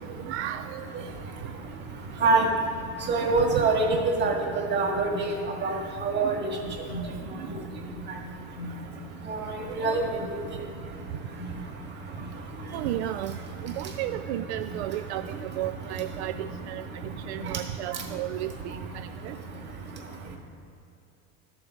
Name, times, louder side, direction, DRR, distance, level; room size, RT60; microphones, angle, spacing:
voice 1, 0.2-0.8 3.5-3.6 5.6-5.7 12.7-13.3 13.6-16.8 17.3-18.5 19.2-19.3, right 13 dB, 75° right, 10 dB, 0.5 m, -33 dB
voice 2, 3.1-5.4 5.6-5.8 6.0-6.5 6.9-7.0 9.3-9.4 9.8-10.0, right 3 dB, 30° right, 0 dB, 2.1 m, -24 dB
13.0 x 6.9 x 4.6 m, 2.8 s
supercardioid pair, 125°, 33 cm